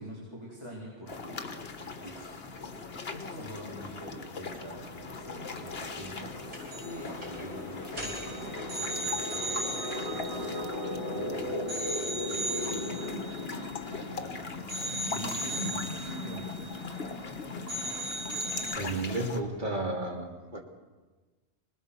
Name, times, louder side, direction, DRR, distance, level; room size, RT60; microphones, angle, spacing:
voice 1, 0.0-10.7 11.1-13.4 13.8-14.6 15.1-17.1, right 1 dB, 25° right, -5 dB, 4.2 m, -46 dB
sound 1, 1.1-19.4, left 3 dB, 55° left, 1.6 m, -39 dB
sound 2, 4.1-14.5, left 1 dB, 15° left, 7.5 m, -39 dB
sound 3, 6.5-7.0 7.2-7.4 7.9-11.2 11.7-14.3 14.7-17.4 17.7-18.8, right 1 dB, 75° right, 7.1 m, -37 dB
voice 2, 18.5-20.6, right 2 dB, 40° right, 0 dB, 3.3 m, -33 dB
25.5 x 19.5 x 7.1 m, 1.3 s
omnidirectional pair, 1.2 m